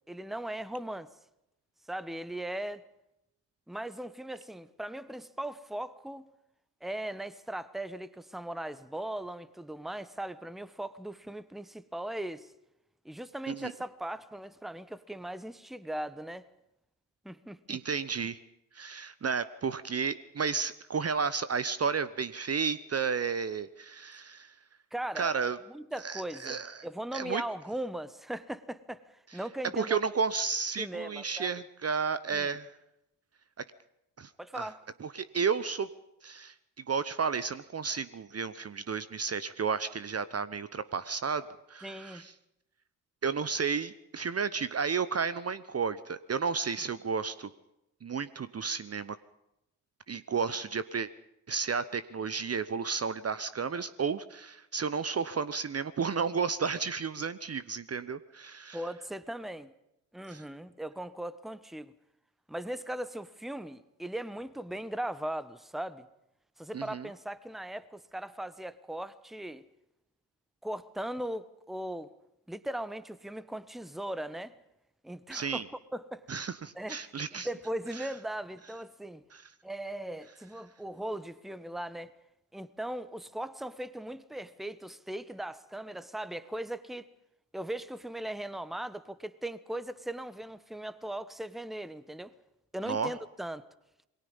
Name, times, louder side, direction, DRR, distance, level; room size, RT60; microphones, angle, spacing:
voice 1, 0.1-1.1 1.9-2.8 3.7-6.3 6.8-12.5 13.0-16.4 17.2-17.8 24.9-25.3 25.7-26.6 26.8-29.0 29.3-30.0 30.8-31.5 32.3-32.5 34.4-34.8 41.8-42.2 58.7-59.7 60.1-61.9 62.5-66.1 66.6-69.6 70.6-72.1 72.5-74.5 75.0-75.6 75.9-76.4 76.7-77.0 77.3-79.2 79.6-82.1 82.5-87.1 87.5-92.3 92.7-93.6, right 1 dB, ahead, 1.2 m, -38 dB
voice 2, 17.7-18.4 18.7-24.5 25.1-25.6 26.0-26.9 27.1-27.4 29.3-29.4 29.7-32.7 34.2-34.7 35.0-35.9 36.2-36.5 36.9-41.4 41.7-42.3 43.2-47.5 48.0-49.2 50.1-51.1 51.5-58.8 60.3-60.4 66.7-67.1 75.3-75.6 76.3-77.5 78.0-78.1 79.3-79.5 92.9-93.1, right 5 dB, 30° right, 1.0 m, -32 dB
27.5 x 22.5 x 5.5 m
figure-of-eight pair, 45°, 48 cm